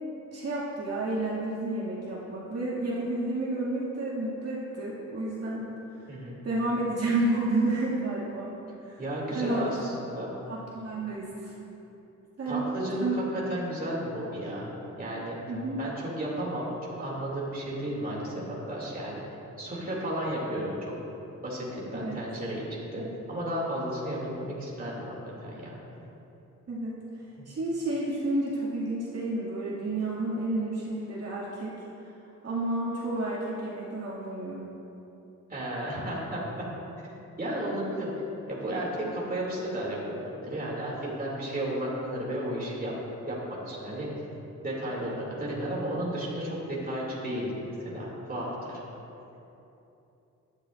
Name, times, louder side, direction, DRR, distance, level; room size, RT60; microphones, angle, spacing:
voice 1, 0.3-5.7 6.4-8.5 8.9-9.0 9.3-9.6 10.5-11.5 12.4-12.7 13.0-13.2 15.5-15.8 21.9-22.2 26.7-27.0 27.5-31.8 32.4-34.6, right 2 dB, 55° right, -8 dB, 2.3 m, -30 dB
voice 2, 6.1-6.4 9.0-10.3 12.4-14.7 15.0-15.4 15.8-16.7 17.0-19.2 19.6-20.9 21.4-25.1 25.4-25.7 27.4-27.5 35.5-36.7 37.4-38.1 38.5-42.9 43.3-43.4 43.7-44.3 44.6-48.8, right 1 dB, 30° right, -5 dB, 2.7 m, -33 dB
16.5 x 12.0 x 2.6 m, 3.0 s
wide cardioid pair, 170°, 30 cm